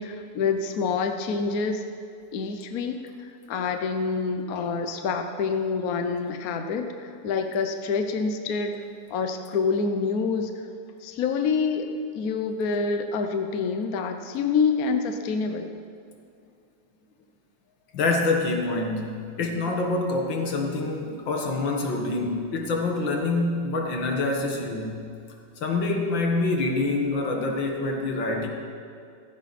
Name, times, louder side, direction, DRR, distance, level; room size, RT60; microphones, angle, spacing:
voice 1, 0.0-1.8 2.3-8.8 9.1-10.5 11.0-11.9 12.1-15.7, left 5 dB, 60° left, 6 dB, 1.2 m, -27 dB
voice 2, 17.9-25.0 25.6-28.5, left 2 dB, 85° left, 1 dB, 2.3 m, -26 dB
15.0 x 15.0 x 4.2 m, 2.3 s
omnidirectional pair, 2.0 m